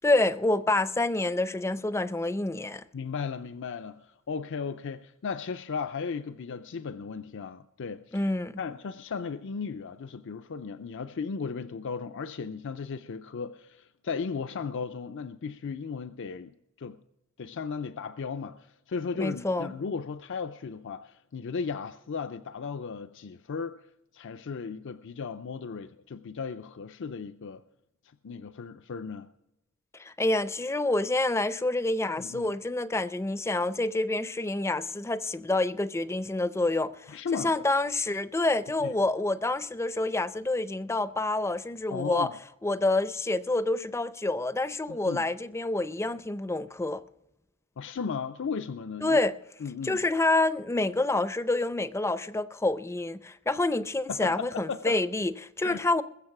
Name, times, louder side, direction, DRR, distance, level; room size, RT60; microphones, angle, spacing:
voice 1, 0.0-2.8 8.1-8.6 19.2-19.7 30.0-42.3 42.6-47.0 49.0-49.4 49.8-56.0, left 2 dB, 15° left, 0.5 m, -27 dB
voice 2, 2.9-8.2 8.6-17.0 17.4-23.8 24.1-27.6 28.2-29.3 32.2-32.5 37.1-37.5 38.8-38.9 41.9-42.3 44.9-45.2 47.8-49.2 49.6-50.0 54.1-55.0 55.6-56.0, left 5 dB, 60° left, 0.5 m, -36 dB
21.0 x 7.3 x 5.9 m
head